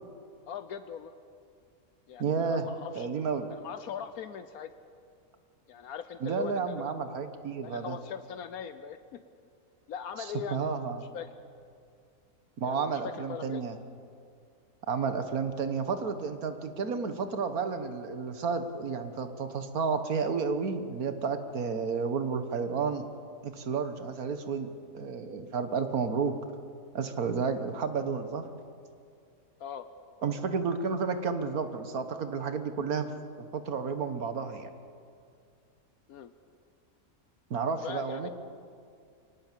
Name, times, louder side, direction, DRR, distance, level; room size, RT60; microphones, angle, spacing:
voice 1, 0.5-1.1 2.1-3.1 3.5-4.7 5.7-7.0 7.6-9.2 9.9-10.7 11.1-11.3 12.6-13.6 29.6-29.9 36.1-36.3 37.8-38.3, left 8 dB, 80° left, 10 dB, 1.3 m, -40 dB
voice 2, 2.2-2.7 3.0-3.5 6.2-8.0 10.2-11.1 12.6-13.8 14.9-23.1 23.4-26.4 26.9-28.5 30.2-33.1 33.4-34.7 37.5-38.3, right 5 dB, 80° right, 9 dB, 1.8 m, -31 dB
24.0 x 19.0 x 7.4 m, 2.3 s
omnidirectional pair, 1.5 m